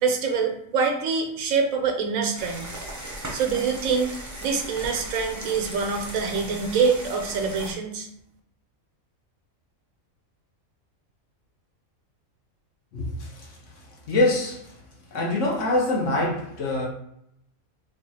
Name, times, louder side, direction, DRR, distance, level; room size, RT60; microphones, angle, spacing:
voice 1, 0.0-2.7 3.3-4.1 4.4-8.1, right 5 dB, 75° right, 1.0 m, -25 dB
sound 1, 2.4-7.7, right 1 dB, 25° right, 0.4 m, -37 dB
voice 2, 12.9-14.8 15.1-16.9, left 2 dB, 65° left, 1.1 m, -25 dB
3.2 x 2.4 x 4.1 m
omnidirectional pair, 1.4 m